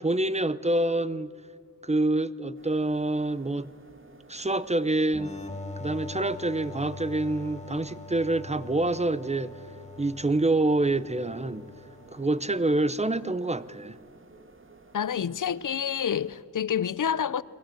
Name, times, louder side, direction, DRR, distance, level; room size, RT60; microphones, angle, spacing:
voice 1, 0.0-1.3 1.8-3.7 4.3-5.3 5.8-9.5 10.0-11.7 12.1-14.0, right 2 dB, 20° right, 0.7 m, -26 dB
sound 1, 2.6-16.4, right 3 dB, 35° right, 1.9 m, -55 dB
sound 2, 5.1-12.6, left 3 dB, 20° left, 2.0 m, -43 dB
voice 2, 14.9-17.4, left 8 dB, 60° left, 0.6 m, -28 dB
30.0 x 21.5 x 7.7 m
wide cardioid pair, 100°, 35 cm